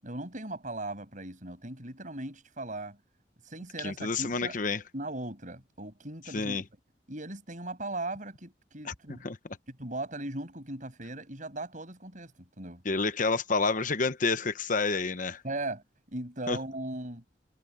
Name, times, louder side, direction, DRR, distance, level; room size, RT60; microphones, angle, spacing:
voice 1, 0.0-3.0 3.4-4.6 4.9-6.6 7.1-9.3 9.8-12.3 12.6-12.8 15.4-17.2, right 2 dB, 45° right, 7.5 m, -38 dB
voice 2, 3.8-4.8 6.3-6.6 8.8-8.9 9.2-9.4 12.8-15.4 16.5-16.6, left 4 dB, 50° left, 1.0 m, -29 dB
head